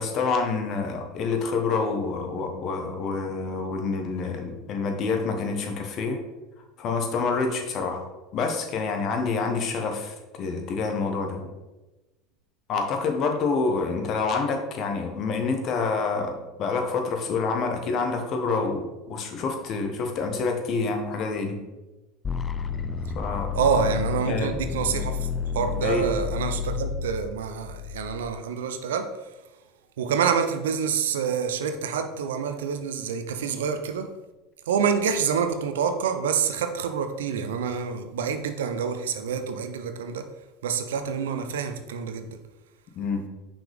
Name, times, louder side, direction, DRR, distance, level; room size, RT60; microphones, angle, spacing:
voice 1, 0.0-6.2 6.8-8.0 8.3-11.5 12.7-21.6 23.1-23.5 24.3-24.6 25.8-26.1 42.9-43.2, left 4 dB, 50° left, 4 dB, 1.2 m, -27 dB
sound 1, 22.2-28.2, left 6 dB, 25° left, 0.4 m, -30 dB
voice 2, 23.6-25.3 25.5-29.1 30.0-34.1 34.7-40.3 40.6-42.3, right 6 dB, 85° right, 8 dB, 0.6 m, -27 dB
5.9 x 5.1 x 3.6 m, 1.1 s
hypercardioid pair, 90°, 0 cm